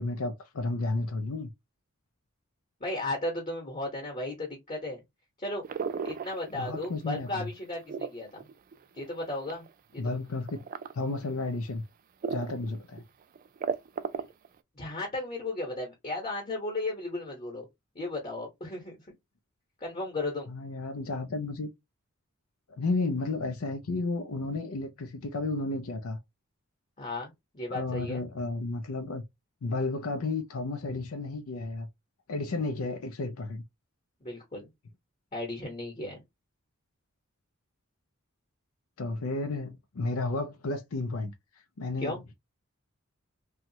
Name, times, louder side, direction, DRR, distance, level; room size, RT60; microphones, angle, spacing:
voice 1, 0.0-1.5 6.5-7.5 10.0-10.6 10.9-11.8 12.3-13.0 20.5-21.7 22.8-26.2 27.7-29.2 29.6-31.9 32.3-33.6 39.0-41.3 41.8-42.4, left 3 dB, 75° left, 0.5 m, -32 dB
voice 2, 2.8-5.0 5.4-5.6 6.0-8.5 8.9-9.6 9.9-10.2 14.7-17.7 17.9-19.0 19.8-20.5 27.0-28.2 34.2-34.7 35.3-36.2 42.0-42.2, left 2 dB, 30° left, 1.0 m, -35 dB
sound 1, 5.6-7.0 7.4-9.7 10.5-10.9 11.4-11.5 12.2-12.7 13.0-13.1 13.4-14.5, right 6 dB, 40° right, 0.3 m, -34 dB
3.0 x 2.3 x 2.7 m
head